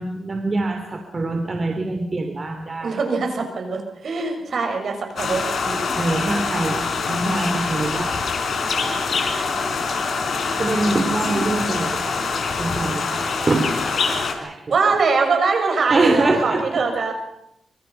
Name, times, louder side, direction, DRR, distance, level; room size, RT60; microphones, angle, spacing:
voice 1, 0.0-3.0 6.0-8.1 10.2-10.3 10.6-12.2 12.6-14.2 14.4-14.5 15.9-16.6, right 2 dB, 35° right, 4 dB, 3.0 m, -24 dB
voice 2, 2.8-5.9 14.7-17.1, right 4 dB, 60° right, 4 dB, 6.5 m, -22 dB
sound 1, 5.2-14.3, left 4 dB, 65° left, 4.6 m, -24 dB
25.5 x 25.0 x 5.8 m, 0.79 s
cardioid pair, 100°, 0 cm